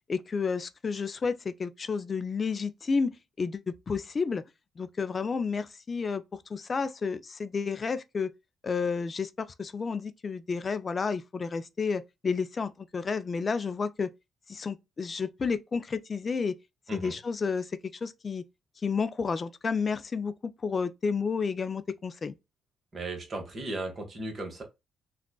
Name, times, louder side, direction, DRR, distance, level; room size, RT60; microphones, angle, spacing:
voice 1, 0.1-4.4 4.8-6.2 6.5-8.3 8.6-14.1 14.5-16.6 16.9-17.7 18.0-18.4 18.8-20.3 20.6-22.3, left 5 dB, 35° left, 0.3 m, -31 dB
voice 2, 22.9-24.6, right 2 dB, 40° right, 1.5 m, -36 dB
3.6 x 2.4 x 2.2 m
cardioid pair, 90°, 0 cm